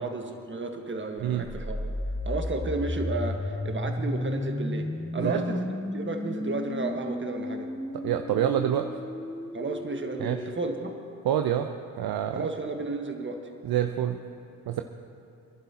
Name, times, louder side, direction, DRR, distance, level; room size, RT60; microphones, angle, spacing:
voice 1, 0.0-1.9 2.2-5.7 5.9-7.7 9.5-10.9 12.3-13.4, right 3 dB, 25° right, 4 dB, 1.6 m, -33 dB
sound 1, 1.4-11.2, left 1 dB, 5° left, 0.5 m, -34 dB
voice 2, 8.0-8.8 10.2-10.4 11.2-11.7 12.0-12.4 13.6-14.2 14.7-14.8, right 10 dB, 50° right, 6 dB, 0.8 m, -26 dB
26.0 x 11.5 x 3.0 m, 2.6 s
hypercardioid pair, 50°, 49 cm